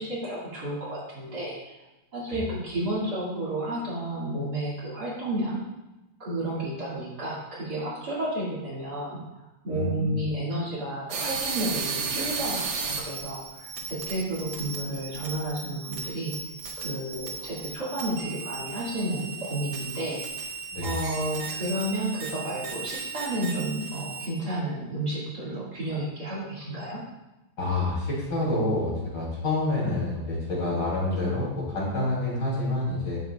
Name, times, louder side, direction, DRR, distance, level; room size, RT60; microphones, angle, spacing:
voice 1, 0.0-1.6 2.1-5.6 6.2-16.3 16.8-20.2 20.8-27.0, right 1 dB, 45° right, -7 dB, 2.6 m, -31 dB
voice 2, 9.7-10.2 20.7-20.9 27.6-33.2, left 2 dB, 50° left, -6 dB, 3.4 m, -28 dB
sound 1, 11.1-24.3, right 5 dB, 80° right, 2.0 m, -35 dB
9.8 x 7.7 x 2.3 m, 1.0 s
omnidirectional pair, 2.4 m